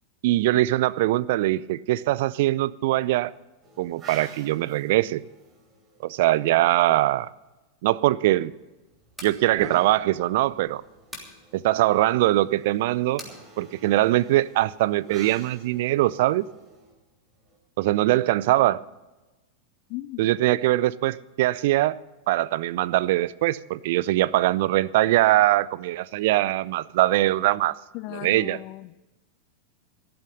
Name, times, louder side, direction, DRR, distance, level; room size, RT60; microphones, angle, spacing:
voice 1, 0.2-3.3 3.8-5.2 6.0-7.3 7.8-8.5 9.2-10.8 11.5-13.2 13.6-16.5 17.8-18.8 20.2-22.0 22.3-27.8 28.1-28.6, right 16 dB, 50° right, 0.4 m, -22 dB
sound 1, 3.6-6.8 8.6-17.6, right 1 dB, 25° right, 3.6 m, -48 dB
sound 2, 9.1-9.4 11.1-11.4 13.2-13.4, left 1 dB, ahead, 3.1 m, -40 dB
voice 2, 19.9-20.2 27.9-29.1, left 19 dB, 45° left, 0.4 m, -37 dB
14.0 x 12.5 x 5.3 m
figure-of-eight pair, 90°, 0 cm